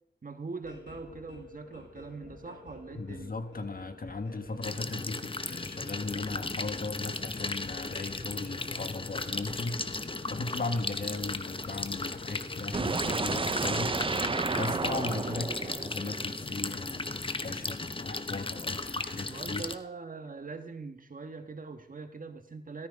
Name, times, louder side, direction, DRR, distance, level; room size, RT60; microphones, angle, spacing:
voice 1, 0.2-3.3 19.3-22.9, right 4 dB, 50° right, 7 dB, 1.6 m, -42 dB
sound 1, 0.6-15.6, left 2 dB, 80° left, 3.4 m, -51 dB
voice 2, 2.9-19.6, left 3 dB, 50° left, 8 dB, 1.6 m, -37 dB
sound 2, 4.6-19.8, left 3 dB, 30° left, 0.9 m, -36 dB
sound 3, 12.7-16.7, right 4 dB, 30° right, 0.5 m, -32 dB
16.0 x 13.5 x 5.3 m, 0.78 s
wide cardioid pair, 75°, 18 cm